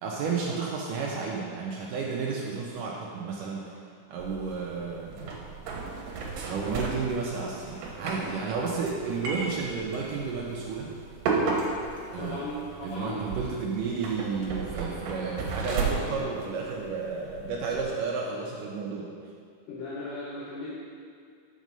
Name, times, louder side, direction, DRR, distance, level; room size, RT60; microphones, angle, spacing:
voice 1, 0.0-3.7 4.1-5.2 5.9-6.0 6.5-10.9 12.1-12.4 12.8-19.1, right 4 dB, 85° right, -3 dB, 1.8 m, -32 dB
sound 1, 4.2-17.8, right 4 dB, 70° right, 2.4 m, -35 dB
voice 2, 12.2-13.2 17.6-17.7 19.7-20.7, left 1 dB, 70° left, -8 dB, 2.3 m, -37 dB
6.3 x 6.2 x 5.3 m, 2.3 s
omnidirectional pair, 4.5 m